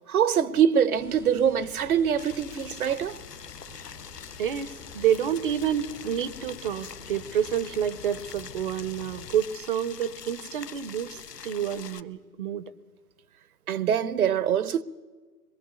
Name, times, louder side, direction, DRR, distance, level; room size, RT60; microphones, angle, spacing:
voice 1, 0.1-3.2 13.7-14.8, right 8 dB, 65° right, 0.9 m, -24 dB
sound 1, 0.9-9.4, left 5 dB, 10° left, 0.7 m, -48 dB
Boiling, 2.2-12.0, left 7 dB, 85° left, 0.9 m, -44 dB
voice 2, 4.4-12.7, right 9 dB, 35° right, 0.7 m, -29 dB
23.0 x 21.0 x 6.9 m
figure-of-eight pair, 130°, 47 cm